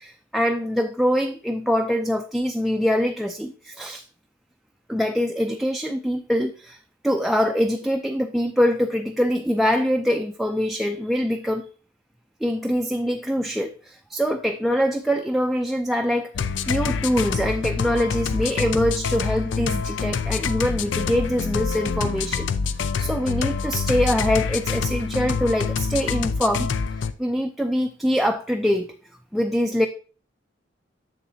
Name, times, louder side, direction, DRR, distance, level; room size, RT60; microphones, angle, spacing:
voice 1, 0.0-4.0 4.9-6.8 7.0-11.6 12.4-22.5 22.7-26.7 27.2-29.0 29.3-29.9, equal, ahead, 4 dB, 0.3 m, -24 dB
sound 1, 16.3-27.1, left 5 dB, 80° left, 0.4 m, -26 dB
7.4 x 6.9 x 2.7 m, 0.38 s
head